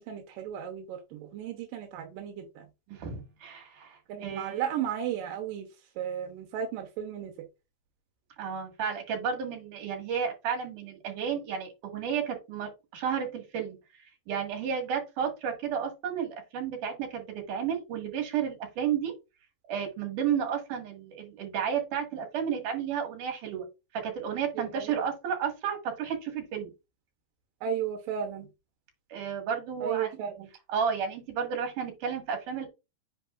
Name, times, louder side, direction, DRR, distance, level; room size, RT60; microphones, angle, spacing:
voice 1, 0.0-2.7 4.1-5.7 6.0-7.3 24.6-24.8 27.6-28.5 29.8-30.5, right 9 dB, 90° right, 4 dB, 2.7 m, -34 dB
voice 2, 2.9-4.7 8.4-19.1 19.7-23.7 23.9-26.7 29.1-30.1 30.7-32.7, right 7 dB, 70° right, 3 dB, 3.3 m, -32 dB
9.2 x 5.1 x 2.4 m, 0.26 s
omnidirectional pair, 3.8 m